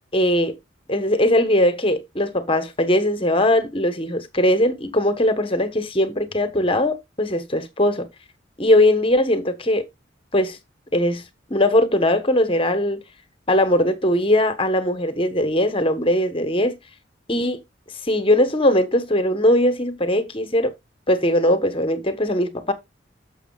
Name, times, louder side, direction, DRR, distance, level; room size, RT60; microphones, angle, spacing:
voice 1, 0.1-0.6 0.9-8.1 8.6-9.8 10.3-10.6 10.9-11.2 11.5-13.0 13.5-16.8 17.3-17.6 18.0-20.7 21.1-22.7, left 1 dB, 30° left, 1.2 m, -20 dB
11.0 x 7.2 x 2.4 m
head